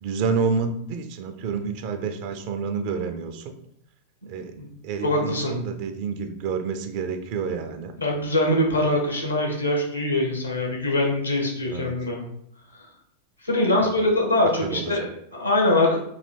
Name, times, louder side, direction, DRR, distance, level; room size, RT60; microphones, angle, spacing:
voice 1, 0.0-3.5 4.3-4.5 4.8-7.9 11.7-11.9 13.8-14.0 14.6-15.1, right 5 dB, 45° right, 6 dB, 0.5 m, -29 dB
voice 2, 5.0-5.5 8.0-12.2 13.4-16.0, left 1 dB, 80° left, 0 dB, 1.0 m, -23 dB
3.3 x 2.8 x 4.2 m, 0.72 s
figure-of-eight pair, 90°, 0 cm